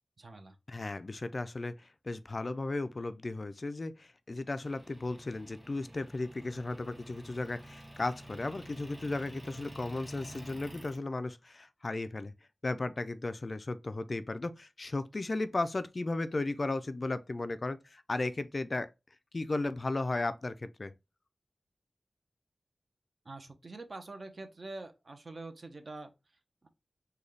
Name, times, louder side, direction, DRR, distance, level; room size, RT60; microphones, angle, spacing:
voice 1, 0.2-0.6 23.2-26.7, right 2 dB, 50° right, 0.6 m, -46 dB
voice 2, 0.7-12.3 12.6-18.9 19.3-20.9, left 2 dB, 45° left, 0.3 m, -35 dB
Motor vehicle (road) / Engine, 4.6-11.0, right 1 dB, 10° right, 1.1 m, -49 dB
3.8 x 2.2 x 3.2 m
wide cardioid pair, 90°, 0 cm